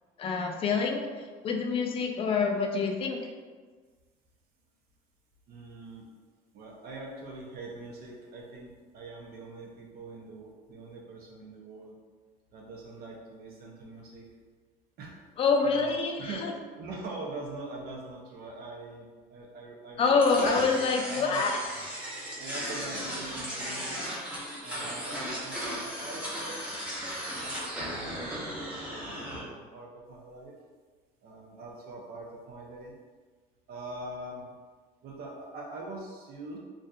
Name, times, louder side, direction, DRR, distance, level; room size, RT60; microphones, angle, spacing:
voice 1, 0.2-1.0 1.4-3.2 15.4-16.5 20.0-21.6, left 4 dB, 30° left, 3 dB, 0.3 m, -26 dB
voice 2, 5.5-6.0 6.5-12.0 12.5-14.3 15.0-15.1 15.6-15.9 16.2-20.5 21.0-21.5 22.4-24.0 24.6-26.6 27.4-30.6 31.2-32.9 33.7-34.4 35.0-36.6, right 2 dB, 60° right, -1 dB, 0.6 m, -43 dB
sound 1, 20.2-29.4, equal, 5° right, 0.8 m, -36 dB
2.6 x 2.3 x 2.3 m, 1.5 s
supercardioid pair, 95°, 18 cm